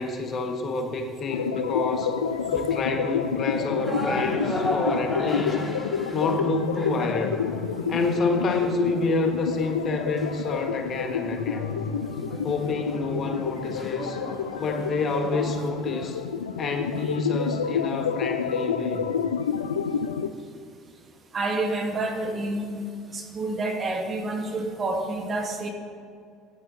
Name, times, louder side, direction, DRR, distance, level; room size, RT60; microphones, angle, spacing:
voice 1, 0.0-2.2 2.5-5.6 6.1-7.5 7.9-11.8 12.4-14.2 14.6-16.2 16.6-19.0, left 3 dB, 45° left, 5 dB, 1.4 m, -28 dB
sound 1, 1.3-20.3, left 7 dB, 85° left, 0.4 m, -29 dB
sound 2, 3.8-16.1, left 1 dB, 15° left, 2.5 m, -36 dB
voice 2, 12.1-12.4 21.3-22.8 23.1-25.7, right 2 dB, 35° right, 3 dB, 1.8 m, -29 dB
16.0 x 10.5 x 3.8 m, 2.3 s
hypercardioid pair, 65°, 0 cm